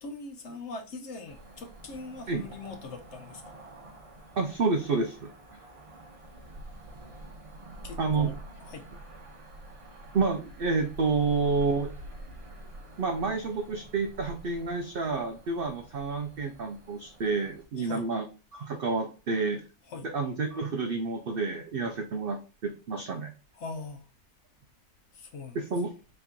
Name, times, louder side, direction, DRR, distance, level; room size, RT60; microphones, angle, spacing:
voice 1, 0.0-3.4 7.8-8.9 17.8-18.1 19.9-20.1 23.5-24.1 25.1-25.6, left 3 dB, 65° left, 0.8 m, -41 dB
Cricket / Motor vehicle (road), 1.2-17.6, right 1 dB, 30° right, 0.7 m, -47 dB
voice 2, 4.4-5.3 8.0-8.3 10.1-11.9 13.0-18.3 18.5-19.6 20.0-23.3 25.5-25.9, right 4 dB, 70° right, 0.5 m, -29 dB
4.3 x 2.9 x 3.6 m
omnidirectional pair, 1.5 m